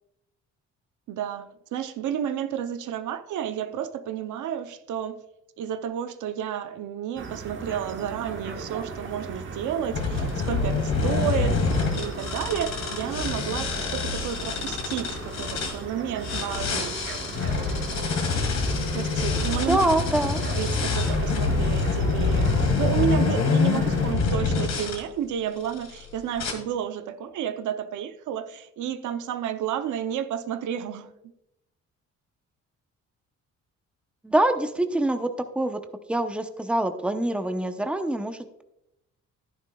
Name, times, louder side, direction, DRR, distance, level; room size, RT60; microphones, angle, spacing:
voice 1, 1.1-5.2 5.6-17.0 18.9-19.8 20.5-31.1, right 9 dB, 75° right, 0.7 m, -31 dB
sound 1, 7.2-24.1, right 4 dB, 40° right, 1.3 m, -37 dB
sound 2, 9.9-15.8 16.2-25.0 25.6-26.0 26.4-26.5, left 4 dB, 60° left, 1.9 m, -26 dB
voice 2, 19.6-20.4 34.2-35.8 36.1-38.6, right 1 dB, 5° right, 0.7 m, -25 dB
11.5 x 10.0 x 2.3 m
cardioid pair, 90°, 30 cm